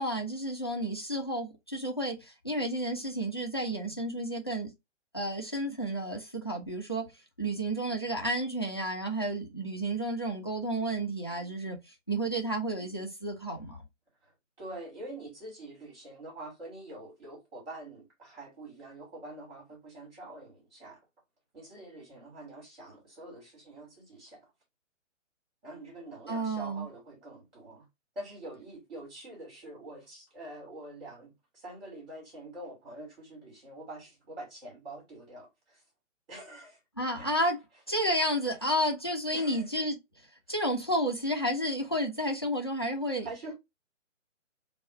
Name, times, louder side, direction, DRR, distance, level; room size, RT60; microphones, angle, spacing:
voice 1, 0.0-4.7 5.1-7.0 7.4-13.8 26.3-26.9 37.0-37.6 37.9-40.0 40.5-43.3, right 1 dB, 20° left, 0.3 m, -31 dB
voice 2, 14.2-21.0 21.5-24.5 25.6-27.9 28.2-35.8 36.3-36.8 37.2-37.3 39.3-39.7 40.5-40.6 43.2-43.6, right 2 dB, 50° right, 2.4 m, -45 dB
3.5 x 2.3 x 4.2 m
figure-of-eight pair, 140°, 38 cm